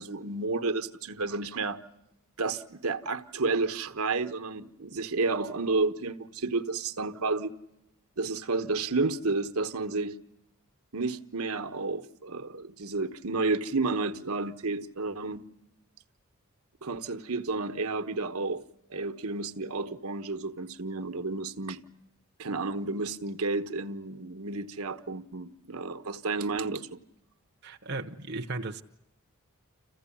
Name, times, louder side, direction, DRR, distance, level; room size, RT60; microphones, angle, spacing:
voice 1, 0.0-1.8 2.4-7.5 8.2-10.2 10.9-15.4 16.8-18.6 18.9-21.8 22.4-27.0, right 3 dB, 75° right, 1.2 m, -31 dB
voice 2, 27.6-28.8, right 3 dB, 50° right, 0.9 m, -36 dB
27.5 x 15.5 x 10.0 m
head